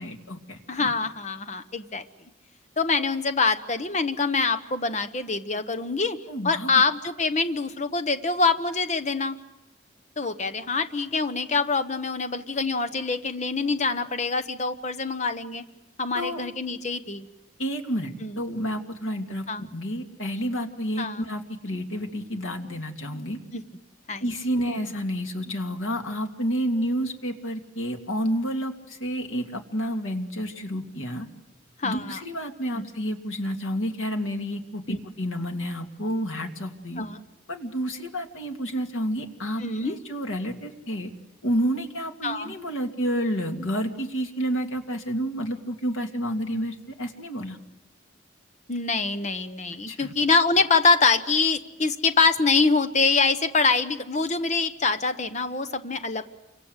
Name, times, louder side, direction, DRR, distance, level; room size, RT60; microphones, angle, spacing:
voice 1, 0.0-0.9 6.3-6.8 16.1-16.5 17.6-23.4 24.2-31.3 31.8-37.1 37.5-41.1 41.4-47.6 49.9-50.1, equal, 85° left, 4 dB, 2.6 m, -30 dB
voice 2, 0.7-2.0 2.8-6.2 6.4-9.4 10.2-15.6 16.0-17.3 18.2-18.4 19.5-19.7 21.0-21.3 23.5-23.6 24.1-24.2 31.8-32.2 32.7-32.9 34.9-35.0 37.0-37.2 39.6-40.0 42.2-42.5 48.7-56.4, left 4 dB, 35° left, 10 dB, 1.0 m, -25 dB
28.5 x 24.5 x 8.2 m, 0.92 s
head